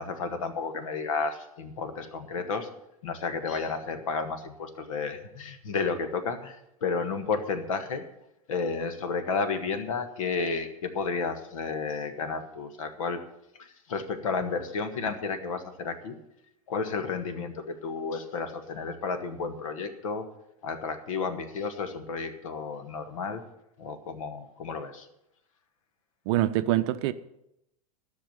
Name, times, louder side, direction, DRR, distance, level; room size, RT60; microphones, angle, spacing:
voice 1, 0.0-2.7 3.0-8.1 8.5-13.2 13.6-16.2 16.7-20.3 20.6-23.4 23.8-25.1, left 4 dB, 60° left, 9 dB, 1.6 m, -32 dB
voice 2, 26.3-27.1, right 14 dB, 45° right, 11 dB, 0.7 m, -25 dB
13.5 x 6.3 x 8.8 m, 0.83 s
figure-of-eight pair, 90°, 19 cm